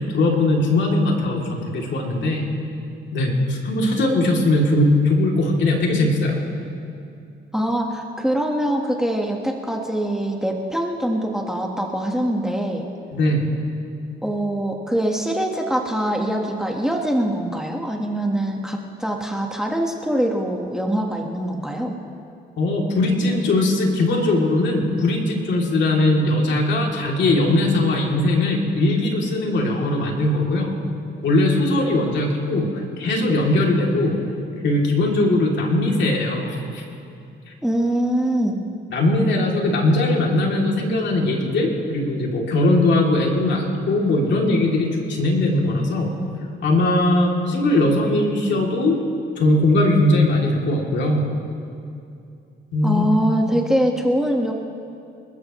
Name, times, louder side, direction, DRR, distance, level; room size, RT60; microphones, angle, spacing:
voice 1, 0.0-2.5 3.1-6.4 13.1-13.5 22.6-30.7 31.2-34.2 34.6-36.8 38.9-46.1 46.6-49.0 49.4-51.2 52.7-53.0, left 2 dB, 65° left, -1 dB, 3.0 m, -20 dB
voice 2, 7.5-12.9 14.2-22.0 37.6-38.6 52.8-54.5, right 1 dB, 5° right, 1 dB, 1.6 m, -23 dB
27.5 x 14.0 x 3.2 m, 2.6 s
cardioid pair, 90°, 20 cm